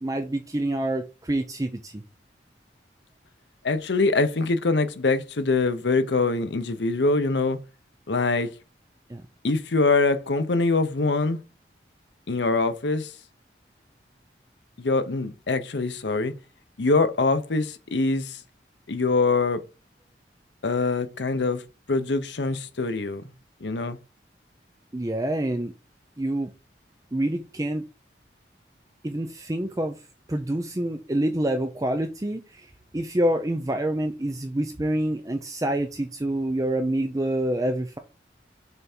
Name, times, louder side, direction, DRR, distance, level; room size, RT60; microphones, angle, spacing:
voice 1, 0.0-2.0 9.1-9.2 24.9-25.7 26.2-26.5 27.1-27.8 29.0-30.0 30.3-38.0, right 1 dB, 20° right, 0.5 m, -27 dB
voice 2, 3.6-7.6 8.1-8.5 9.4-11.4 12.3-13.1 14.8-16.3 16.8-18.4 18.9-19.6 20.6-21.6 21.9-23.2 23.6-24.0, left 3 dB, 75° left, 0.7 m, -24 dB
6.8 x 3.5 x 4.3 m
head